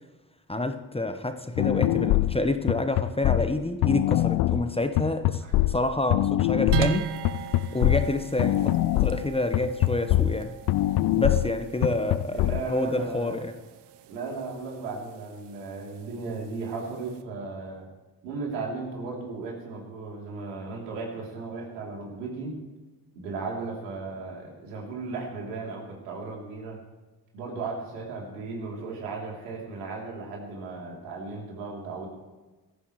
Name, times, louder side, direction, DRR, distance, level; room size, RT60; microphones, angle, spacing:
voice 1, 0.5-5.4 5.7-7.1 7.7-8.7 8.9-10.5 11.2-13.5, left 2 dB, 10° left, 1.2 m, -28 dB
sound 1, 1.6-12.6, left 15 dB, 50° left, 0.6 m, -24 dB
sound 2, 6.7-17.2, right 9 dB, 55° right, 1.2 m, -37 dB
voice 2, 12.0-13.5 14.1-17.9 18.2-22.6 23.1-26.8 27.3-32.1, right 4 dB, 75° right, 3.5 m, -36 dB
21.5 x 14.5 x 3.3 m
figure-of-eight pair, 40°, 48 cm